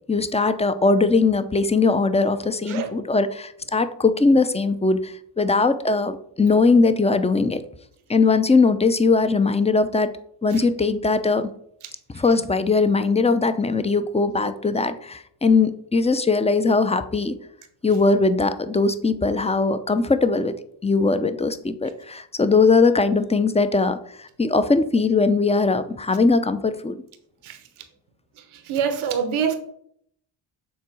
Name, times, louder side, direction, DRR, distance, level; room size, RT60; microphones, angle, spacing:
voice 1, 0.1-7.6 8.1-10.1 10.4-11.5 12.1-17.4 17.8-20.6 20.8-24.0 24.4-27.0, left 4 dB, 15° left, 12 dB, 0.6 m, -20 dB
voice 2, 28.5-29.5, right 7 dB, 85° right, 6 dB, 1.1 m, -25 dB
7.2 x 3.7 x 6.2 m, 0.69 s
cardioid pair, 70°, 48 cm